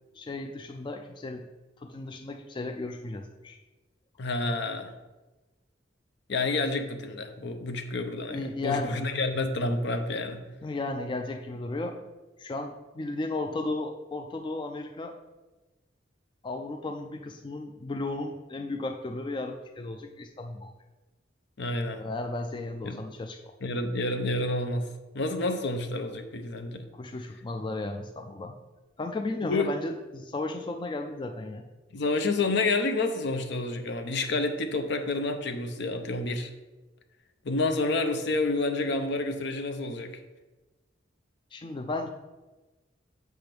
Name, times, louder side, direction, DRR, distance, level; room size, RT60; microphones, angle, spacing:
voice 1, 0.1-1.5 1.8-3.6 8.3-9.0 10.6-12.0 12.4-15.2 16.4-20.7 22.0-23.4 26.9-28.6 29.0-31.7 41.5-42.1, left 2 dB, 25° left, 5 dB, 0.4 m, -34 dB
voice 2, 4.2-4.9 6.3-10.4 21.6-22.0 22.8-23.0 23.6-24.9 25.1-26.9 29.4-29.7 31.9-36.5 37.4-40.1, left 2 dB, 65° left, 7 dB, 0.7 m, -29 dB
7.6 x 3.5 x 6.0 m, 1.2 s
head